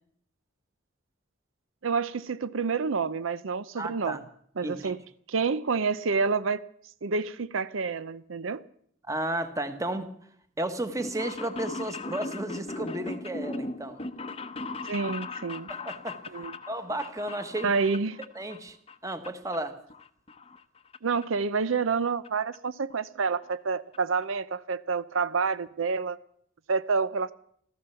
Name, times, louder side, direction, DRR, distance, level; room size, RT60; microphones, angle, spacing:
voice 1, 1.8-4.2 4.6-5.0 5.3-6.6 7.0-8.6 14.9-15.7 16.3-16.5 17.6-18.2 21.0-26.2 26.7-27.3, right 4 dB, 85° right, 0.6 m, -28 dB
voice 2, 3.8-4.2 4.6-4.9 9.1-10.1 10.6-14.0 15.7-16.4 16.7-17.7 18.3-18.8 19.0-19.8, right 1 dB, 15° right, 1.2 m, -33 dB
sound 1, 10.8-18.6 18.9-19.6 19.9-21.0 21.2-21.3 22.2-22.3 22.5-22.6 22.9-23.0 23.3-23.6 23.9-24.0 24.2-24.3, left 3 dB, 30° left, 0.7 m, -38 dB
15.0 x 14.0 x 6.9 m
head